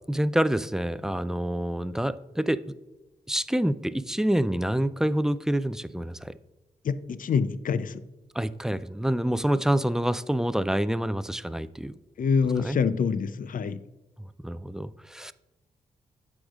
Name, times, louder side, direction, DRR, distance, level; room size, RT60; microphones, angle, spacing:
voice 1, 0.1-2.6 3.3-6.3 8.3-12.0 12.6-12.8 14.4-15.3, right 1 dB, 5° right, 14 dB, 0.4 m, -27 dB
voice 2, 6.8-8.0 12.2-13.8, left 6 dB, 50° left, 14 dB, 0.5 m, -26 dB
14.0 x 4.9 x 2.4 m, 1.1 s
supercardioid pair, 40°, 18 cm